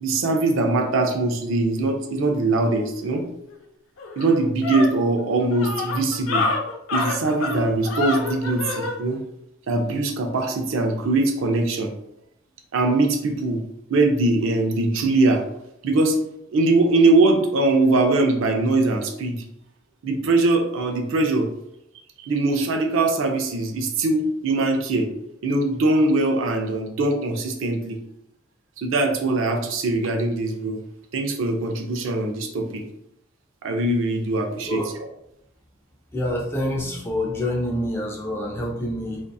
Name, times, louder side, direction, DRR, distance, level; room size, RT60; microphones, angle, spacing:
voice 1, 0.0-3.3 4.2-6.5 6.9-9.2 9.7-11.9 12.7-13.6 13.9-15.4 15.8-16.2 16.5-19.4 20.0-21.5 22.2-25.1 25.4-28.0 28.8-30.8 31.1-32.8 33.6-34.8, right 2 dB, 75° right, 4 dB, 0.4 m, -21 dB
sound 1, 3.5-3.6 4.0-9.0, left 3 dB, 85° left, 0.5 m, -27 dB
voice 2, 36.1-39.2, left 1 dB, 10° left, -2 dB, 0.3 m, -26 dB
2.6 x 2.3 x 2.2 m, 0.80 s
head